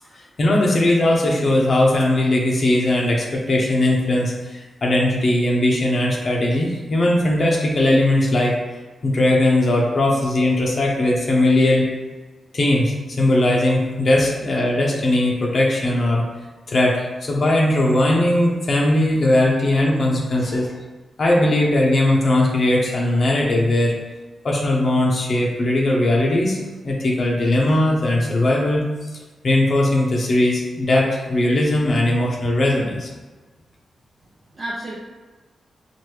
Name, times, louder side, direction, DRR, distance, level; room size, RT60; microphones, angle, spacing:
voice 1, 0.4-8.6 9.0-11.9 12.5-16.2 16.7-20.7 21.2-23.9 24.4-28.9 29.4-33.1, left 1 dB, 55° left, -2 dB, 0.7 m, -19 dB
voice 2, 20.4-20.7 34.5-34.9, right 1 dB, 45° right, -7 dB, 0.8 m, -34 dB
4.5 x 2.5 x 3.2 m, 1.3 s
cardioid pair, 70°, 0 cm